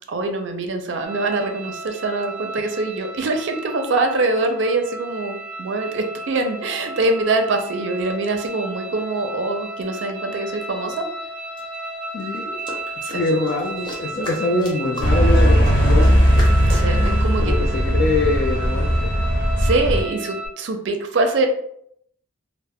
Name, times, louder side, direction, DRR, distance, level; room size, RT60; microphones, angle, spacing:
voice 1, 0.1-10.9 13.0-13.2 14.1-14.3 16.7-17.5 19.6-21.5, right 2 dB, 70° right, 5 dB, 0.4 m, -24 dB
sound 1, 1.0-20.5, right 2 dB, 25° right, 0.7 m, -34 dB
sound 2, 10.9-11.0 11.6-17.1, left 1 dB, 25° left, 0.7 m, -36 dB
voice 2, 12.1-12.6 13.1-16.1 17.4-19.1, left 2 dB, 50° left, -1 dB, 0.3 m, -24 dB
sound 3, 15.0-20.0, equal, 70° left, 1.1 m, -17 dB
2.1 x 2.0 x 3.4 m, 0.71 s
head